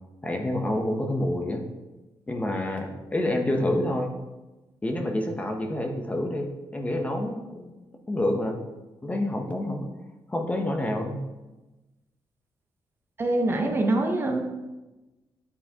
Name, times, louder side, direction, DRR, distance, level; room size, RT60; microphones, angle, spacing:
voice 1, 0.2-1.6 2.3-4.1 4.8-7.7 8.1-8.6 9.0-9.9 10.3-11.2, left 1 dB, 15° left, 3 dB, 0.6 m, -28 dB
voice 2, 13.2-14.4, right 2 dB, 25° right, 3 dB, 0.6 m, -24 dB
9.7 x 4.5 x 2.7 m, 1.1 s
wide cardioid pair, 175°, 9 cm